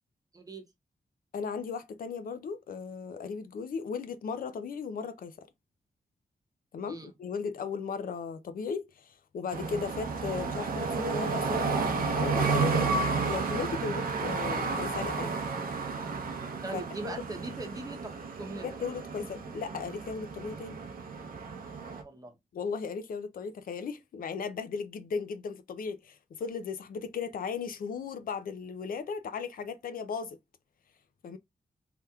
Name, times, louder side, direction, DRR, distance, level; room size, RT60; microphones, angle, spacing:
voice 1, 0.3-0.7 6.9-7.1 16.6-18.8 21.9-22.4, right 2 dB, 25° right, 0.7 m, -41 dB
voice 2, 1.3-5.5 6.7-15.3 16.7-17.1 18.6-20.8 22.5-30.4 31.2-31.4, left 5 dB, 80° left, 0.5 m, -36 dB
sound 1, 9.5-22.0, right 4 dB, 85° right, 0.7 m, -32 dB
3.4 x 2.9 x 2.3 m
wide cardioid pair, 135°, 14 cm